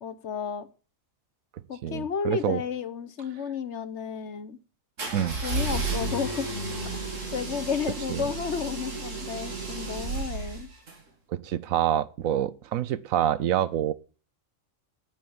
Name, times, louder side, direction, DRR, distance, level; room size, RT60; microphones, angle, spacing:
voice 1, 0.0-0.7 1.7-4.6 5.4-6.5 7.3-10.7, left 6 dB, 60° left, 1.2 m, -32 dB
voice 2, 1.8-2.6 5.1-5.4 8.1-8.3 11.3-13.9, right 11 dB, 90° right, 1.2 m, -27 dB
sound 1, 5.0-11.0, right 3 dB, 70° right, 2.9 m, -32 dB
9.0 x 8.9 x 7.0 m
omnidirectional pair, 1.4 m